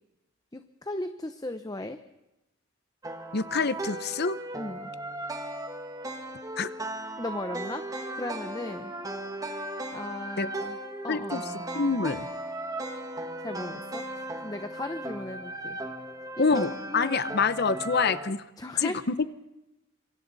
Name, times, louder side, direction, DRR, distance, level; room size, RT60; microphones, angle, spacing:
voice 1, 0.5-2.0 4.5-4.9 7.2-8.9 9.9-10.8 11.0-11.5 13.4-15.8 16.4-17.3 18.6-19.0, left 1 dB, 20° left, 9 dB, 0.8 m, -37 dB
sound 1, 3.0-18.3, right 1 dB, 15° right, 1.5 m, -37 dB
voice 2, 3.3-4.4 6.6-6.7 10.4-10.5 11.1-11.4 11.7-12.3 16.4-18.4 18.8-18.9, left 4 dB, 50° left, 14 dB, 0.8 m, -26 dB
26.5 x 24.5 x 4.1 m, 0.97 s
head